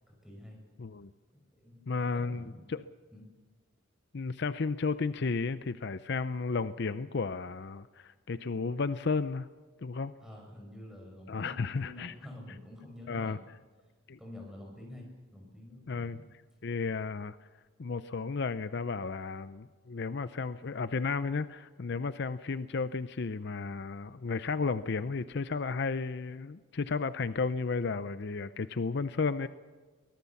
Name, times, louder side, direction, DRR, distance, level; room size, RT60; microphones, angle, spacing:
voice 1, 0.1-0.6 1.5-1.9 2.1-2.6 3.1-3.2 10.2-13.4 14.2-16.3, left 1 dB, 5° right, 0 dB, 5.5 m, -48 dB
voice 2, 0.8-1.1 1.9-2.8 4.1-9.5 9.8-10.1 11.3-12.1 13.1-13.4 14.1-14.2 15.9-16.2 16.6-17.4 17.8-29.5, left 4 dB, 55° left, 13 dB, 0.5 m, -33 dB
23.5 x 18.5 x 7.1 m, 1.4 s
head